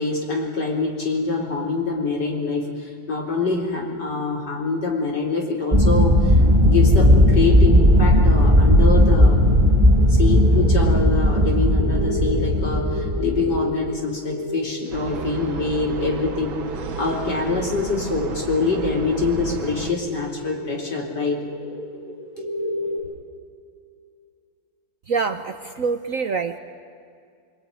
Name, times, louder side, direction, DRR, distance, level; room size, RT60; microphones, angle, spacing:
voice 1, 0.0-2.7 3.1-6.4 6.6-9.4 10.1-16.5 17.0-21.4, left 4 dB, 60° left, 0 dB, 4.7 m, -25 dB
sound 1, 5.7-13.6, equal, 20° right, 1.2 m, -16 dB
sound 2, 6.8-23.0, left 1 dB, 25° left, 5.5 m, -34 dB
sound 3, 14.9-19.9, right 7 dB, 85° right, 2.2 m, -32 dB
voice 2, 25.1-26.6, right 5 dB, 55° right, 7 dB, 1.1 m, -25 dB
25.0 x 24.5 x 9.7 m, 2.3 s
omnidirectional pair, 2.1 m